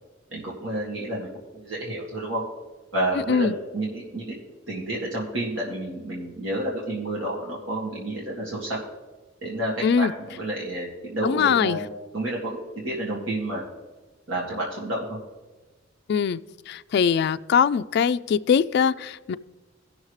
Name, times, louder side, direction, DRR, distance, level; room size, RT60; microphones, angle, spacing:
voice 1, 0.3-1.3 1.5-2.4 2.9-4.4 4.7-8.8 9.4-11.9 12.1-12.6 12.8-13.6 14.3-15.2, right 1 dB, 90° right, -4 dB, 2.0 m, -30 dB
voice 2, 9.8-10.1 11.2-11.8 16.1-16.4 16.7-19.4, left 7 dB, 60° left, 13 dB, 0.3 m, -22 dB
18.0 x 6.4 x 3.2 m, 1.2 s
head